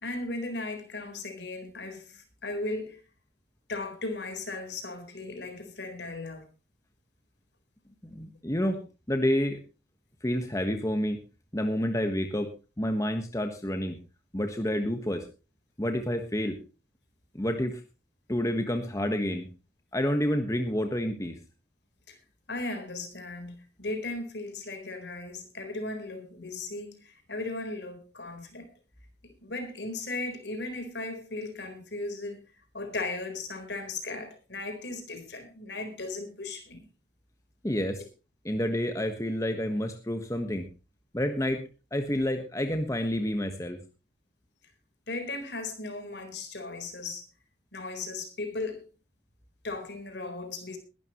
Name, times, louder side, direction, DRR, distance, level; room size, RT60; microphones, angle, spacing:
voice 1, 0.0-3.0 3.7-6.5 22.1-22.2 22.5-28.7 29.2-36.8 45.1-47.3 47.7-48.9 49.6-50.8, left 2 dB, 65° left, 4.2 m, -37 dB
voice 2, 8.0-9.6 10.2-11.2 11.5-12.5 12.8-14.0 14.3-15.3 15.8-16.6 17.3-17.8 18.3-19.5 19.9-21.4 37.6-38.0 38.4-40.7 41.1-41.6 41.9-43.8, equal, 15° left, 1.3 m, -29 dB
21.0 x 12.0 x 3.1 m
head